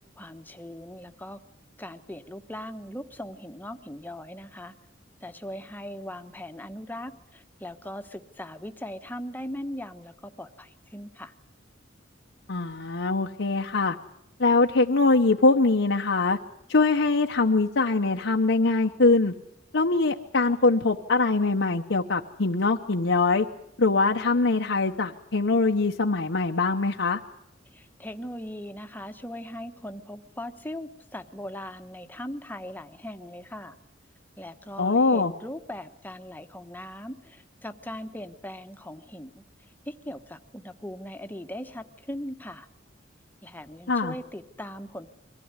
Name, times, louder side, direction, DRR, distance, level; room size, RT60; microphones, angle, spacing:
voice 1, 0.2-1.4 1.8-4.7 5.2-11.3 27.7-33.7 34.4-39.4 39.9-42.7 43.4-45.1, left 1 dB, 10° left, 8 dB, 1.1 m, -39 dB
voice 2, 12.5-14.0 14.4-16.4 16.7-19.3 19.7-23.5 23.8-27.2 34.8-35.3 43.9-44.1, left 3 dB, 70° left, 2 dB, 0.9 m, -23 dB
23.5 x 16.0 x 9.7 m, 0.83 s
head